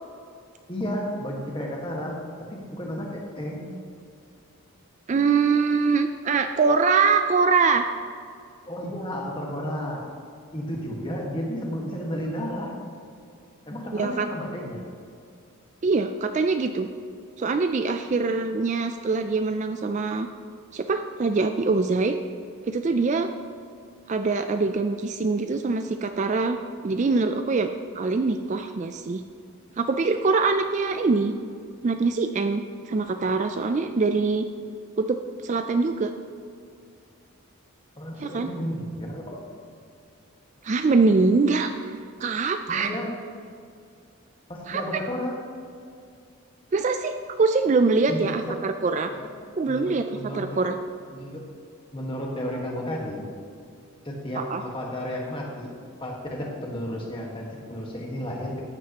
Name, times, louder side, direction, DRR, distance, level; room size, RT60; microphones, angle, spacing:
voice 1, 0.7-2.2 2.5-3.7 8.7-10.0 10.5-12.7 13.7-14.8 38.0-39.4 42.7-43.1 44.5-45.4 48.1-48.6 49.2-49.3 49.7-50.7 51.1-51.4 51.9-53.2 54.0-58.5, equal, 25° left, -1 dB, 1.5 m, -32 dB
voice 2, 5.1-7.9 13.9-14.3 15.8-16.9 17.4-20.3 20.7-22.1 22.6-23.3 24.1-26.6 26.8-27.7 27.9-29.2 29.8-31.3 31.8-34.5 35.0-36.1 38.2-38.5 40.6-42.9 44.7-45.0 46.7-49.1 49.6-50.8 54.4-54.6, right 4 dB, 35° right, 7 dB, 0.3 m, -23 dB
13.5 x 9.5 x 2.9 m, 2.4 s
head